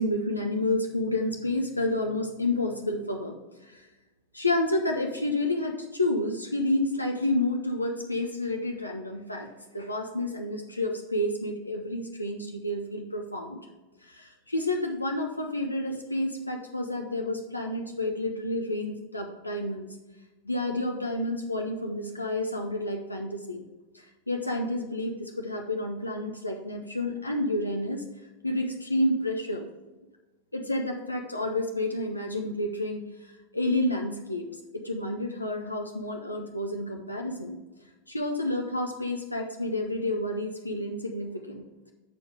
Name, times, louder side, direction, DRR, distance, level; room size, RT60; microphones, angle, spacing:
voice 1, 0.0-3.9 4.3-13.6 14.0-19.9 20.5-23.6 23.9-28.0 28.4-29.7 30.5-34.4 34.7-37.6 38.1-41.7, left 1 dB, 85° left, 2 dB, 0.6 m, -30 dB
7.8 x 4.7 x 4.8 m, 1.1 s
figure-of-eight pair, 90°, 0 cm